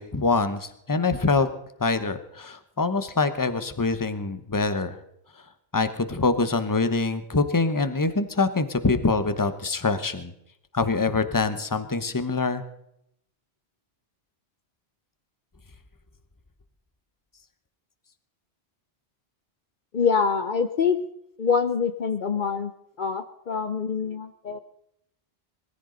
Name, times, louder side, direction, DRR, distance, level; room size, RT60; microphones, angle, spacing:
voice 1, 0.0-1.5 1.8-5.0 5.7-10.3 10.7-12.6, left 3 dB, 20° left, 10 dB, 1.0 m, -24 dB
voice 2, 19.9-21.0 21.4-22.7 23.0-24.6, left 6 dB, 50° left, 9 dB, 0.8 m, -25 dB
21.0 x 14.5 x 3.9 m, 0.76 s
omnidirectional pair, 1.1 m